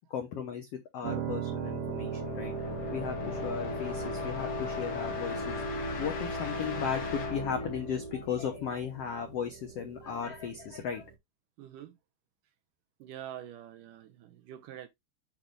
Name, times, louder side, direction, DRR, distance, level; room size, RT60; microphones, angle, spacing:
voice 1, 0.1-2.5 2.9-5.6 6.0-11.1, left 7 dB, 80° left, 1.3 m, -36 dB
Piano, 1.0-11.1, right 8 dB, 90° right, 3.8 m, -41 dB
sound 1, 1.3-8.8, left 4 dB, 65° left, 2.6 m, -53 dB
sound 2, 1.4-9.1, left 3 dB, 50° left, 1.2 m, -37 dB
voice 2, 11.6-12.0 13.0-14.9, right 11 dB, 75° right, 2.2 m, -45 dB
8.7 x 3.0 x 5.2 m
omnidirectional pair, 4.3 m